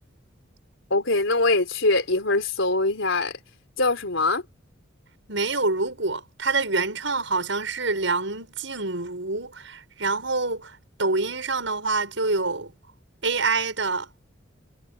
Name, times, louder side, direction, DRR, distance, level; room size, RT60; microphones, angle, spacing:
voice 1, 0.9-3.4 3.8-4.4, left 2 dB, 80° left, 4.0 m, -23 dB
voice 2, 5.3-12.7 13.2-14.1, right 3 dB, 70° right, 7.6 m, -26 dB
head